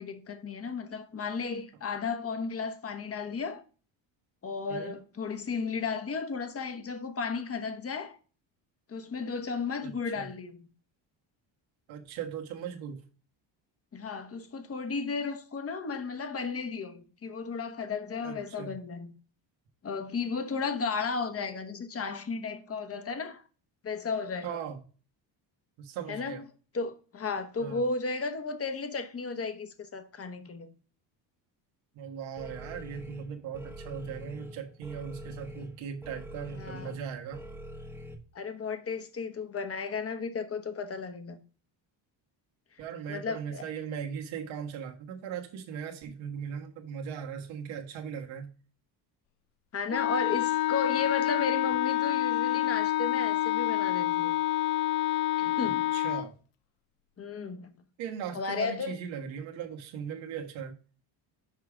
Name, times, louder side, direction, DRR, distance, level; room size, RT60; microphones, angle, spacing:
voice 1, 0.0-3.6 4.4-8.2 8.9-10.7 13.9-19.1 19.8-23.4 23.8-24.6 26.1-26.5 26.7-30.7 36.5-36.9 38.3-41.4 43.1-43.7 49.7-54.4 55.4-55.9 57.2-57.8 58.3-59.0, left 4 dB, 30° left, 1.1 m, -34 dB
voice 2, 9.8-10.3 11.9-13.0 18.2-18.8 24.4-24.8 25.8-26.4 27.6-27.8 31.9-37.4 42.8-48.5 55.6-56.3 58.0-60.7, right 7 dB, 85° right, 1.6 m, -39 dB
sound 1, 32.4-38.1, equal, 5° right, 1.1 m, -44 dB
Wind instrument woodwind instrument, 49.9-56.3, left 16 dB, 80° left, 0.5 m, -28 dB
6.6 x 4.8 x 4.9 m
cardioid pair, 120°, 46 cm